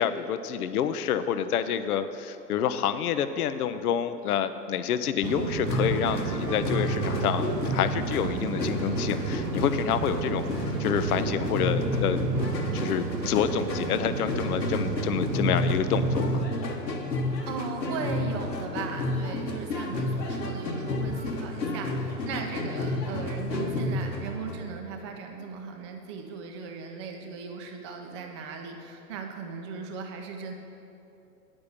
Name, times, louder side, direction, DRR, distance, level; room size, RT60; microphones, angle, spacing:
voice 1, 0.0-10.5 10.8-12.2 12.7-16.4, left 8 dB, 65° left, 11 dB, 0.6 m, -28 dB
sound 1, 5.2-16.5, right 9 dB, 75° right, 0.6 m, -34 dB
sound 2, 5.6-24.6, left 1 dB, 85° left, 1.3 m, -30 dB
voice 2, 17.4-30.5, right 5 dB, 20° right, 3 dB, 0.5 m, -37 dB
8.7 x 5.2 x 7.0 m, 2.9 s
hypercardioid pair, 120°, 49 cm